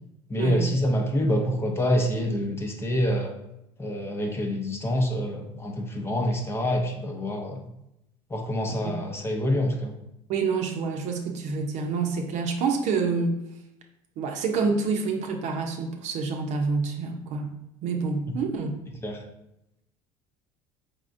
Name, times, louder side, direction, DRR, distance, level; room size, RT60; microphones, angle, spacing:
voice 1, 0.3-3.3 3.8-7.7 8.3-9.9 19.0-19.2, equal, 20° left, 2 dB, 0.7 m, -26 dB
voice 2, 10.3-13.4 14.2-17.5 17.8-18.7, right 4 dB, 60° right, 3 dB, 0.8 m, -27 dB
4.9 x 3.5 x 2.6 m, 0.84 s
supercardioid pair, 100°, 14 cm